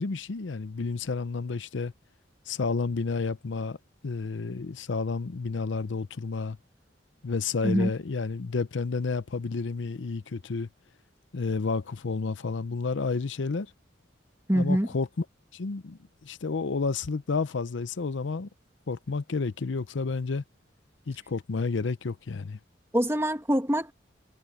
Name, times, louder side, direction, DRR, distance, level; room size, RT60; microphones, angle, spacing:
voice 1, 0.0-1.9 2.5-3.8 4.0-6.6 7.2-10.7 11.3-13.7 14.5-15.1 15.5-18.5 18.9-20.4 21.1-22.6, left 4 dB, 85° left, 0.6 m, -30 dB
voice 2, 14.5-14.9 22.9-23.9, equal, 15° right, 2.1 m, -24 dB
head